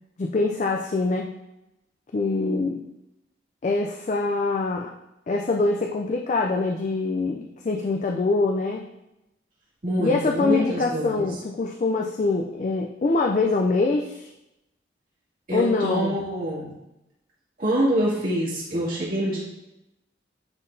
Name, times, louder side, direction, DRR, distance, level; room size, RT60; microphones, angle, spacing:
voice 1, 0.2-1.3 2.1-2.8 3.6-4.9 5.3-8.9 10.0-14.3 15.5-16.2, left 3 dB, 40° left, 1 dB, 0.3 m, -24 dB
voice 2, 9.8-11.3 15.5-16.8 17.6-19.4, equal, 50° right, -9 dB, 2.4 m, -25 dB
9.9 x 3.9 x 2.6 m, 0.91 s
head